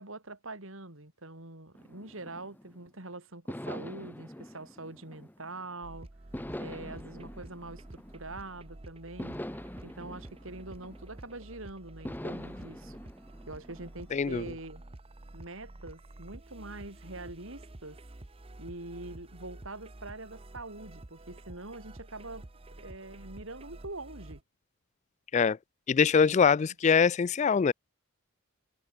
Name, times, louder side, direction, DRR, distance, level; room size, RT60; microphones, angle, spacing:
voice 1, 0.0-6.1 6.6-9.4 9.8-12.9 13.5-14.8 15.3-18.0 18.6-22.5 22.8-24.4 26.5-26.7, right 2 dB, 65° right, 3.8 m, -44 dB
sound 1, 1.7-2.9 3.5-5.7 6.3-8.6 9.2-11.4 12.0-14.2, left 1 dB, 10° left, 0.9 m, -43 dB
sound 2, 5.8-24.4, right 1 dB, 25° right, 0.9 m, -49 dB
voice 2, 14.1-14.4 25.3-25.6 25.9-27.7, left 6 dB, 35° left, 0.3 m, -23 dB
head